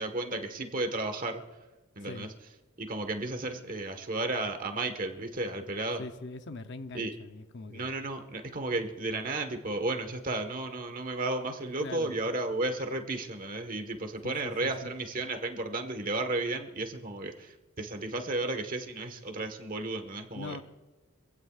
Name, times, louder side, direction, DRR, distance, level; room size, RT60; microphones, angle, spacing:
voice 1, 0.0-1.4 2.0-2.3 2.8-6.0 6.9-7.1 7.7-20.6, right 2 dB, 40° right, 1.4 m, -33 dB
voice 2, 2.0-2.3 6.0-7.9 11.8-12.1 14.2-14.9 20.3-20.6, left 3 dB, 50° left, 0.7 m, -42 dB
25.5 x 16.0 x 2.5 m
head